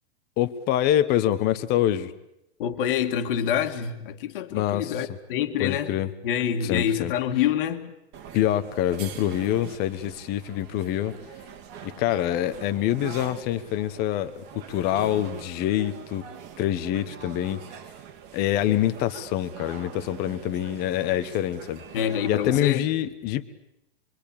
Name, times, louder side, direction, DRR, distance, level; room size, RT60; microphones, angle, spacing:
voice 1, 0.4-2.1 4.5-5.1 5.6-6.1 6.6-7.1 8.3-11.1 11.8-16.3 16.6-17.6 18.3-21.8 22.3-23.5, left 12 dB, 30° left, 1.2 m, -25 dB
voice 2, 2.6-5.9 6.2-7.9 21.9-22.9, left 9 dB, 55° left, 2.1 m, -26 dB
sound 1, 8.1-22.6, right 8 dB, 30° right, 1.9 m, -43 dB
26.0 x 23.0 x 8.7 m
hypercardioid pair, 150°, 33 cm